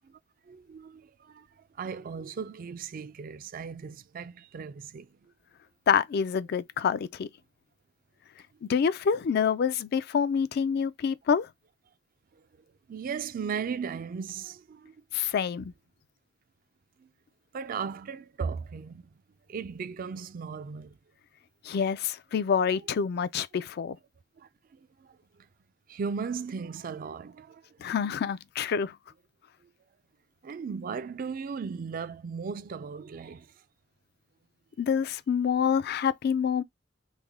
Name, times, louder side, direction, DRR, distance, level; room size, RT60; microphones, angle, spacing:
voice 1, 0.4-5.3 12.3-15.0 17.0-17.1 17.5-19.2 19.5-21.0 22.7-22.9 24.4-25.5 25.9-27.9 29.6-29.7 30.4-33.6, right 6 dB, 50° right, 0.4 m, -37 dB
voice 2, 5.9-7.3 8.6-11.5 15.1-15.7 21.6-24.0 27.8-29.0 34.8-36.6, left 7 dB, 55° left, 0.3 m, -27 dB
3.3 x 2.1 x 3.5 m
head